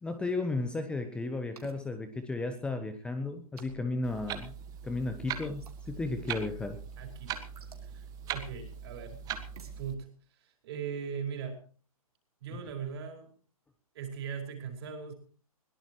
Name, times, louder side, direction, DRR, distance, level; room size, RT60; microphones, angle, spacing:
voice 1, 0.0-4.5 4.8-6.8, left 2 dB, 5° left, 8 dB, 0.9 m, -34 dB
sound 1, 1.6-1.8 3.6-4.0 5.6-5.8 7.6-7.9 9.6-9.8, right 4 dB, 75° right, 3.5 m, -50 dB
Clock, 4.0-9.9, right 9 dB, 20° right, 1.6 m, -41 dB
voice 2, 7.0-7.4 7.8-9.2 9.8-11.6 12.4-13.3 13.9-15.1, right 6 dB, 40° right, 4 dB, 5.0 m, -39 dB
21.5 x 17.5 x 3.1 m, 0.40 s
hypercardioid pair, 135°, 19 cm